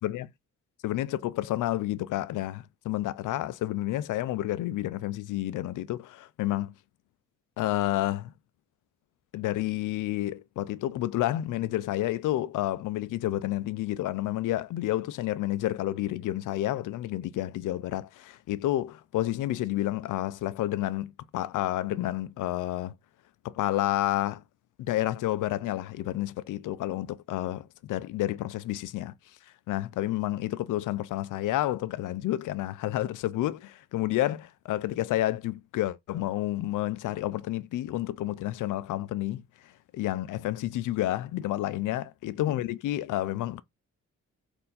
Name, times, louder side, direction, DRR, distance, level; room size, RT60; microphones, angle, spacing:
voice 1, 0.8-6.7 7.6-8.3 9.3-22.9 23.4-24.4 24.8-29.1 29.7-43.6, left 14 dB, 80° left, 0.5 m, -30 dB
4.3 x 2.6 x 3.9 m
cardioid pair, 100°, 30 cm